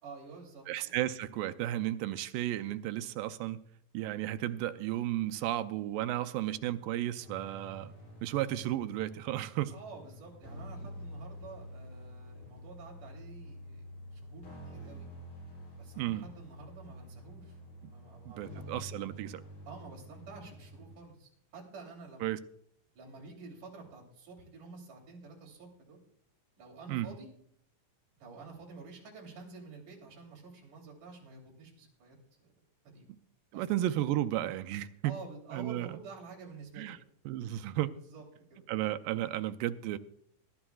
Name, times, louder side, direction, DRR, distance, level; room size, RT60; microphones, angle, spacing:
voice 1, 0.0-0.9 9.7-13.8 14.1-15.1 15.8-17.6 17.8-18.7 19.7-22.3 22.9-26.0 26.6-27.3 28.2-32.2 32.8-33.1 33.5-33.7 35.0-37.0 38.0-38.2 38.5-38.6, right 4 dB, 65° right, 4.5 m, -49 dB
voice 2, 0.7-3.6 3.9-7.9 8.2-9.7 16.0-16.3 18.4-19.4 22.2-22.4 26.9-27.1 33.5-35.2 35.5-36.0 36.8-37.0 37.3-37.9 38.7-40.0, right 13 dB, 90° right, 2.3 m, -33 dB
sound 1, 7.2-20.9, equal, 85° left, 8.2 m, -48 dB
20.5 x 11.0 x 2.4 m
omnidirectional pair, 3.9 m